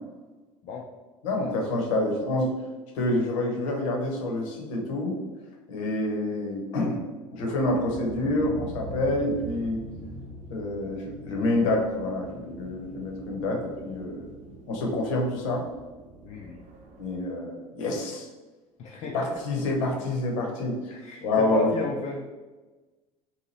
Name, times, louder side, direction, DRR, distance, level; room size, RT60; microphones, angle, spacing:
voice 1, 1.2-2.5 2.9-5.2 5.7-7.0 7.3-9.8 10.5-14.3 14.7-15.6 17.0-18.3 19.1-20.9 21.2-21.7, left 2 dB, 60° left, 0 dB, 0.9 m, -27 dB
sound 1, 7.6-17.2, equal, 45° right, 0.7 m, -43 dB
voice 2, 16.2-16.6 18.8-19.3 20.9-22.3, left 3 dB, 40° left, 0 dB, 0.4 m, -34 dB
2.9 x 2.6 x 4.0 m, 1.2 s
figure-of-eight pair, 65°, 19 cm